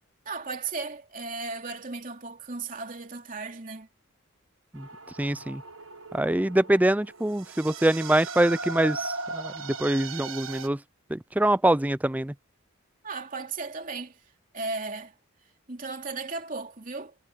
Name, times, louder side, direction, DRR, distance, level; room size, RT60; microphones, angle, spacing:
voice 1, 0.2-3.9 13.0-14.2 14.5-15.1 15.7-17.1, right 3 dB, 40° right, 2.9 m, -35 dB
sound 1, 4.7-10.7, right 4 dB, 70° right, 1.5 m, -38 dB
voice 2, 5.2-5.6 6.1-10.8 11.1-12.3, right 1 dB, 5° right, 0.4 m, -24 dB
head